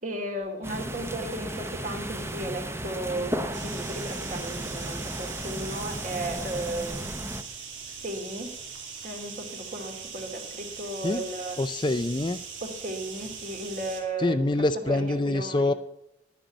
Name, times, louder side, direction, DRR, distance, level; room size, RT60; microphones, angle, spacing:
voice 1, 0.0-7.1 7.9-8.5 9.0-11.6 12.6-15.7, right 1 dB, 40° right, 4 dB, 2.8 m, -35 dB
sound 1, 0.6-7.4, right 1 dB, 15° right, 0.9 m, -34 dB
sound 2, 3.5-14.0, right 5 dB, 90° right, 3.0 m, -41 dB
voice 2, 11.6-12.4 14.2-15.7, left 2 dB, 25° left, 11 dB, 0.4 m, -25 dB
11.5 x 10.5 x 9.1 m, 0.82 s
head